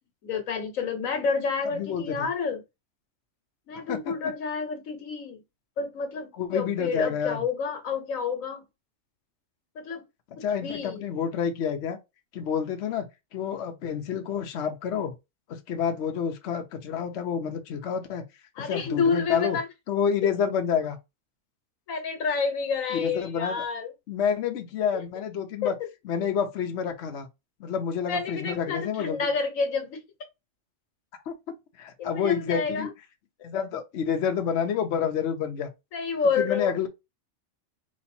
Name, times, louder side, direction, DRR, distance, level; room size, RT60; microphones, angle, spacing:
voice 1, 0.2-2.6 3.7-5.4 5.8-8.6 9.7-10.0 10.4-11.0 18.6-19.6 21.9-23.9 25.6-25.7 28.1-30.0 32.0-32.9 35.9-36.7, left 5 dB, 85° left, 1.4 m, -29 dB
voice 2, 1.7-2.3 3.7-4.1 6.4-7.4 10.4-12.0 12.3-15.2 15.5-18.2 18.6-19.6 19.9-21.0 22.9-23.6 24.1-25.7 26.0-27.3 27.6-29.2 31.3-31.4 31.8-32.9 33.4-35.7 36.4-36.9, left 7 dB, 65° left, 0.9 m, -28 dB
4.1 x 2.5 x 4.3 m
omnidirectional pair, 1.4 m